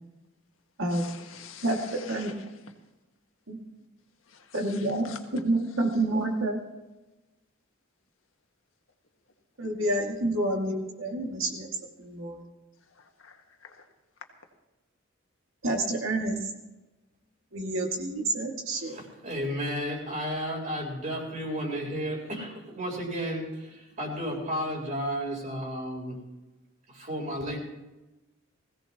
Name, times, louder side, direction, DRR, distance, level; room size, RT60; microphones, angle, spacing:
voice 1, 0.9-2.4 4.3-5.2 12.9-13.9, left 7 dB, 80° left, 4 dB, 1.7 m, -47 dB
voice 2, 1.6-2.3 3.5-3.6 4.5-5.1 5.3-6.6 9.6-12.4 15.6-16.4 17.5-19.0, right 1 dB, 75° right, 1 dB, 2.5 m, -28 dB
voice 3, 18.9-26.2 26.9-27.6, equal, 40° right, 0 dB, 4.2 m, -33 dB
20.5 x 16.5 x 3.1 m, 1.0 s
head